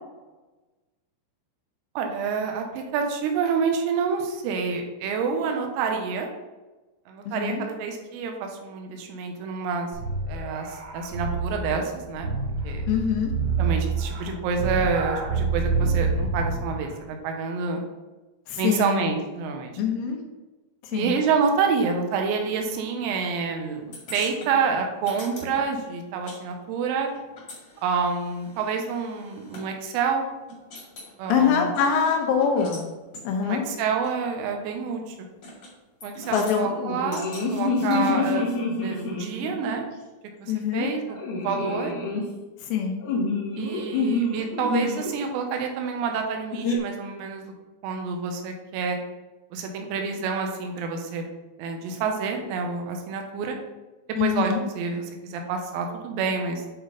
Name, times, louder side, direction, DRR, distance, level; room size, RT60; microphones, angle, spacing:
voice 1, 2.0-6.3 7.1-9.9 10.3-12.3 12.6-12.8 13.6-17.8 18.6-19.8 20.9-27.1 27.8-30.3 31.2-31.7 33.4-35.2 36.0-38.5 38.8-39.9 40.4-41.9 43.6-47.5 47.8-49.0 49.5-51.2 51.6-53.6 54.2-56.7, right 5 dB, 90° right, 3 dB, 3.7 m, -28 dB
voice 2, 7.3-7.6 12.9-13.3 18.5-19.0 19.8-20.2 20.9-21.1 31.3-32.8 33.3-33.6 36.3-36.7 37.8-38.2 40.5-40.9 42.6-42.9 54.2-54.6, left 7 dB, 90° left, 2 dB, 3.8 m, -24 dB
sound 1, 9.9-16.8, right 4 dB, 55° right, 2.2 m, -27 dB
sound 2, 23.9-26.4 26.6-29.7 30.1-30.2 30.5-31.1 31.6-32.9 33.1-33.3 34.0-34.1 35.4-35.7 36.0-36.6 37.1-38.1, left 1 dB, 45° left, 1.9 m, -43 dB
sound 3, 36.7-39.7 41.2-42.2 43.0-45.1 46.5-46.8, left 3 dB, 70° left, 2.0 m, -27 dB
10.0 x 4.2 x 4.0 m, 1.2 s
omnidirectional pair, 6.0 m